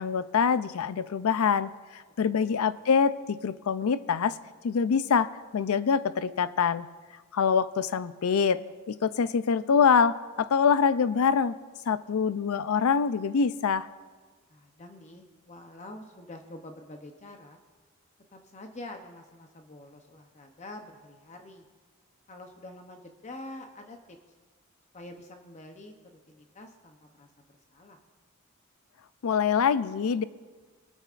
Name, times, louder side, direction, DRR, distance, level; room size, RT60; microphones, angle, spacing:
voice 1, 0.0-4.4 4.6-5.3 5.5-6.9 7.3-8.6 8.9-11.5 11.9-13.9 29.2-30.2, left 6 dB, 90° left, 15 dB, 0.4 m, -25 dB
voice 2, 2.2-2.5 14.5-17.6 18.3-21.7 22.3-24.2 24.9-25.9 26.3-27.3 27.7-28.0, left 1 dB, 35° left, 4 dB, 0.7 m, -46 dB
21.5 x 9.0 x 2.5 m, 1.4 s
head